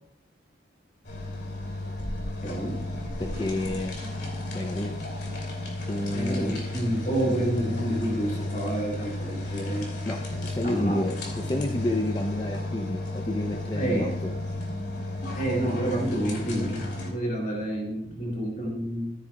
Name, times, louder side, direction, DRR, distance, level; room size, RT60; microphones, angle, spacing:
sound 1, 1.0-17.1, left 2 dB, 55° left, 2.7 m, -33 dB
voice 1, 2.4-2.8 6.1-9.9 10.6-11.0 11.5-11.6 13.7-14.1 15.4-19.1, right 1 dB, 40° left, -2 dB, 3.0 m, -29 dB
voice 2, 3.2-4.0 4.5-4.9 5.9-6.5 10.0-14.3, left 1 dB, 20° left, 3 dB, 0.5 m, -30 dB
14.0 x 9.6 x 2.3 m, 0.90 s
head